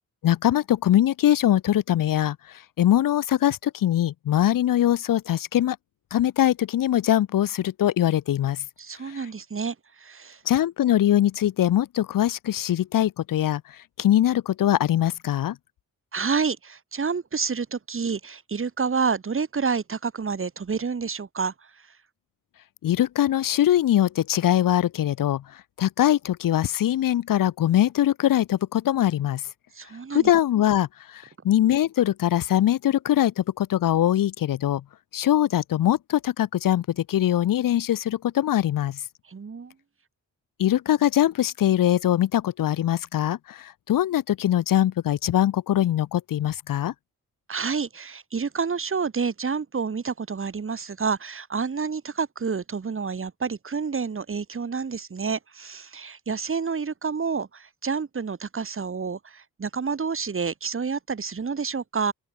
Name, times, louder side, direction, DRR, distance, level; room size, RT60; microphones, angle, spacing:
voice 1, 0.2-2.4 2.8-5.8 6.1-8.6 9.1-9.2 10.5-13.6 14.0-15.6 22.8-25.4 25.8-29.4 30.1-34.8 35.1-39.0 40.6-46.9, left 12 dB, 70° left, 0.7 m, -22 dB
voice 2, 8.8-9.7 10.0-10.4 16.1-21.5 29.8-30.3 39.3-39.7 47.5-62.1, right 5 dB, 40° right, 3.3 m, -29 dB
open air
wide cardioid pair, 150°, 34 cm